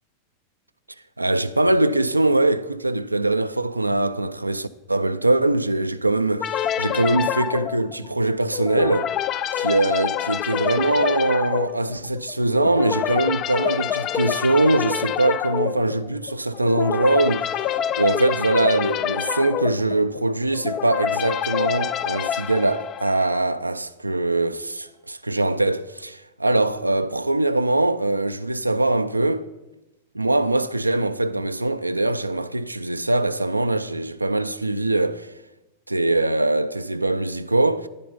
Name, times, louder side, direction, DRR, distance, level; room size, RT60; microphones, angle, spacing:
voice 1, 1.2-9.1 9.5-29.5 30.1-35.3 35.9-37.9, right 2 dB, 85° right, 0.3 m, -22 dB
sound 1, 6.4-23.6, left 10 dB, 35° left, 0.4 m, -27 dB
10.0 x 8.7 x 5.4 m
figure-of-eight pair, 90°, 0 cm